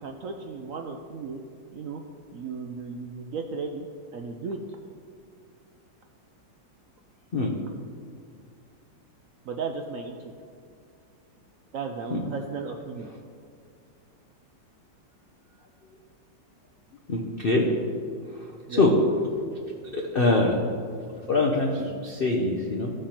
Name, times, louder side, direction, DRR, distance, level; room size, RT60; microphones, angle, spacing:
voice 1, 0.0-1.4 1.7-2.0 2.3-3.9 4.1-4.6 9.4-10.3 11.7-13.1 18.7-18.9, right 4 dB, 70° right, 4 dB, 0.7 m, -35 dB
voice 2, 17.1-17.7 18.7-18.9 19.9-20.5 21.3-22.9, left 2 dB, 50° left, 0 dB, 0.6 m, -23 dB
14.5 x 5.0 x 4.4 m, 2.3 s
omnidirectional pair, 2.0 m